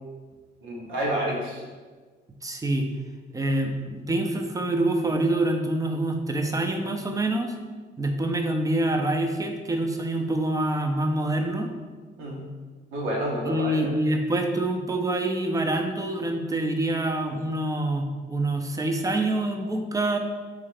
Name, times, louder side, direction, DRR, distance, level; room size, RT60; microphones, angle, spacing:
voice 1, 0.6-1.6 12.2-12.5 12.9-13.9, right 1 dB, 85° right, -3 dB, 1.1 m, -29 dB
voice 2, 2.4-2.9 3.3-7.5 8.0-11.7 13.4-20.2, right 1 dB, 15° right, 4 dB, 0.5 m, -26 dB
3.7 x 3.2 x 3.3 m, 1.4 s
cardioid pair, 90°, 20 cm